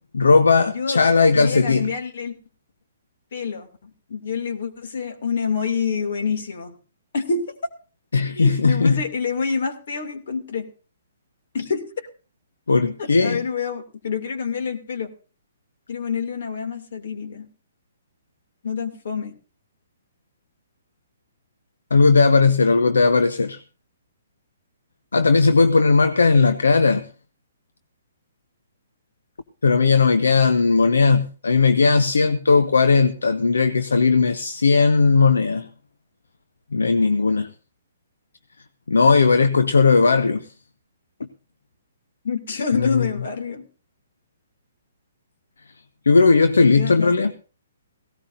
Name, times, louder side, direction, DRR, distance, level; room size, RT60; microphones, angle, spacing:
voice 1, 0.1-1.9 8.1-9.0 12.7-13.4 21.9-23.6 25.1-27.0 29.6-35.7 36.7-37.5 38.9-40.5 41.2-41.3 42.7-43.1 46.1-47.3, left 4 dB, 75° left, 1.0 m, -17 dB
voice 2, 0.7-1.0 1.3-2.4 3.3-6.7 7.1-7.6 8.3-10.7 11.5-12.1 13.0-15.1 15.9-17.5 18.6-19.3 42.2-43.7 46.7-47.3, left 5 dB, 60° left, 2.7 m, -27 dB
18.0 x 17.5 x 2.7 m
figure-of-eight pair, 125°, 0 cm